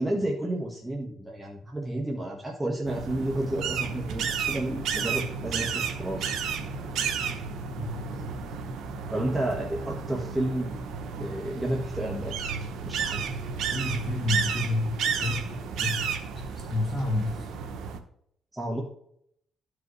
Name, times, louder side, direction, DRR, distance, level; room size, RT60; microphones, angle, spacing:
voice 1, 0.0-6.3 9.1-10.7 11.2-12.4 12.8-13.2 18.5-18.8, right 1 dB, 10° right, -2 dB, 1.6 m, -31 dB
sound 1, 2.9-18.0, right 6 dB, 80° right, 1.0 m, -32 dB
voice 2, 7.8-8.4 13.7-17.5, left 2 dB, 35° left, -2 dB, 1.8 m, -31 dB
14.0 x 5.0 x 3.3 m, 0.70 s
cardioid pair, 90°, 0 cm